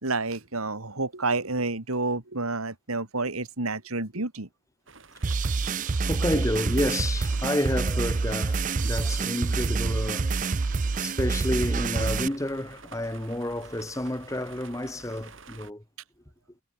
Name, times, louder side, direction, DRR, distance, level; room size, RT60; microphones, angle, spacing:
voice 1, 0.0-4.5 6.3-6.4, right 3 dB, 85° right, 3.0 m, -29 dB
sound 1, 4.9-15.7, right 4 dB, 60° right, 6.4 m, -49 dB
sound 2, 5.2-12.3, right 4 dB, 35° right, 0.5 m, -27 dB
voice 2, 6.1-10.3 11.0-15.8, left 1 dB, 15° left, 1.1 m, -30 dB
head